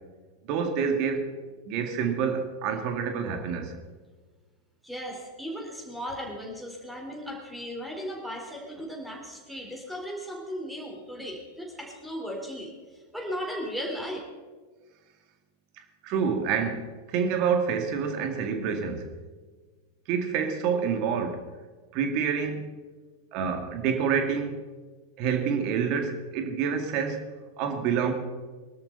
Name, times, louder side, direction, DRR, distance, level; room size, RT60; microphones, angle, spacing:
voice 1, 0.5-1.3 1.7-3.7 16.0-19.1 20.1-21.4 21.9-22.7 23.3-24.6 25.2-27.2 27.6-28.1, right 6 dB, 40° right, 5 dB, 2.2 m, -27 dB
voice 2, 4.8-14.2, equal, 5° right, 0 dB, 4.1 m, -36 dB
22.5 x 13.0 x 4.1 m, 1.4 s
figure-of-eight pair, 90°, 0 cm